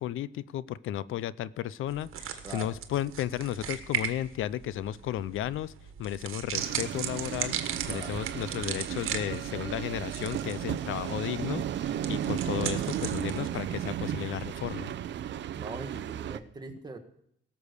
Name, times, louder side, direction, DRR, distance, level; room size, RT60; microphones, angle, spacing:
voice 1, 0.0-5.7 6.0-7.6 7.9-14.9, left 12 dB, 80° left, 19 dB, 0.5 m, -34 dB
sound 1, 1.9-14.7, right 9 dB, 85° right, 1.4 m, -38 dB
voice 2, 2.4-2.8 7.9-8.1 15.5-17.0, right 3 dB, 20° right, 5 dB, 1.5 m, -41 dB
sound 2, 6.5-16.4, right 10 dB, 60° right, 0.6 m, -34 dB
sound 3, 7.3-13.4, left 3 dB, 35° left, 2.6 m, -59 dB
18.0 x 6.9 x 6.6 m, 0.73 s
cardioid pair, 155°, 21 cm